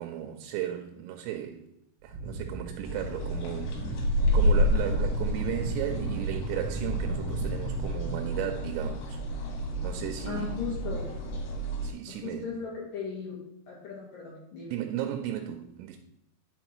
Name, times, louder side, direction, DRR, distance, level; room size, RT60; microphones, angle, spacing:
voice 1, 0.0-1.7 2.0-4.1 4.3-9.2 9.8-10.6 11.8-12.5 14.7-16.0, right 11 dB, 85° right, 3.2 m, -35 dB
sound 1, 2.0-8.0, right 3 dB, 40° right, 1.7 m, -37 dB
sound 2, 2.8-11.9, equal, 85° left, 4.3 m, -29 dB
voice 2, 10.2-11.1 12.2-13.4 13.7-14.7, left 5 dB, 70° left, 2.2 m, -37 dB
10.5 x 5.8 x 3.0 m
omnidirectional pair, 6.0 m